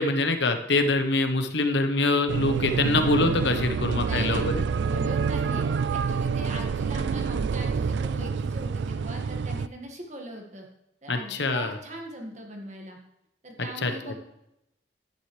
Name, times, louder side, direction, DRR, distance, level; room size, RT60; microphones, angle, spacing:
voice 1, 0.0-4.6 11.1-11.8 13.8-14.1, left 2 dB, 75° left, 7 dB, 1.0 m, -24 dB
sound 1, 2.3-9.7, right 5 dB, 75° right, 0.3 m, -27 dB
voice 2, 4.0-4.5 4.8-10.7 11.0-13.0 13.4-14.2, right 1 dB, 40° right, 1 dB, 1.7 m, -40 dB
11.5 x 9.7 x 3.2 m, 0.84 s
head